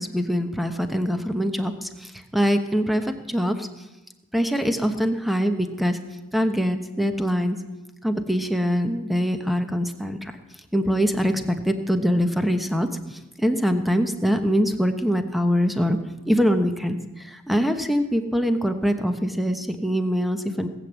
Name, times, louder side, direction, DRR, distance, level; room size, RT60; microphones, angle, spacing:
voice 1, 0.0-3.7 4.3-6.0 6.3-7.6 8.0-10.3 10.7-16.0 16.3-20.7, equal, ahead, 7 dB, 0.9 m, -23 dB
18.5 x 7.9 x 8.1 m, 1.0 s
head